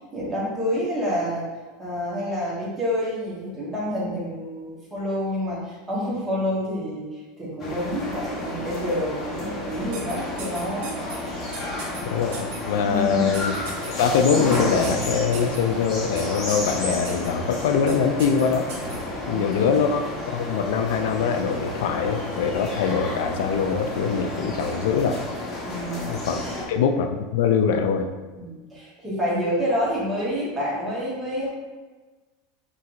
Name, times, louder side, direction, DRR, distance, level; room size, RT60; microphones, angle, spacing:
voice 1, 0.1-1.5 1.8-10.9 12.8-13.4 19.2-19.7 25.6-26.1 26.4-26.6 28.4-31.5, equal, 10° right, -7 dB, 1.2 m, -28 dB
sound 1, 7.6-26.6, left 2 dB, 25° left, 1.0 m, -31 dB
sound 2, 9.9-11.2 11.5-12.0 12.3-12.6 13.3-13.9 14.5-15.6 16.2-16.7 17.0-17.3 17.9-18.0 18.2-19.0, right 4 dB, 70° right, 1.1 m, -37 dB
voice 2, 12.0-13.6 13.9-18.7 19.3-25.2 26.1-28.1, left 6 dB, 70° left, 6 dB, 0.4 m, -23 dB
5.5 x 3.0 x 2.6 m, 1.3 s
supercardioid pair, 170°, 0 cm